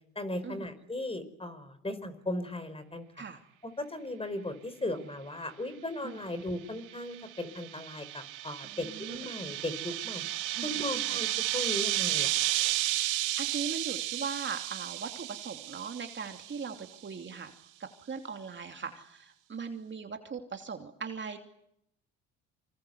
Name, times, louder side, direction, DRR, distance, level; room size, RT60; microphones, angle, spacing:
voice 1, 0.1-3.2 3.6-11.3 11.5-12.5, left 1 dB, 20° left, 11 dB, 5.0 m, -37 dB
sound 1, 6.9-16.7, right 15 dB, 75° right, 2.0 m, -33 dB
voice 2, 8.6-9.3 10.5-11.0 13.4-17.5 17.8-21.4, right 5 dB, 35° right, 5 dB, 2.8 m, -40 dB
27.0 x 25.5 x 8.2 m, 0.76 s
supercardioid pair, 80°, 31 cm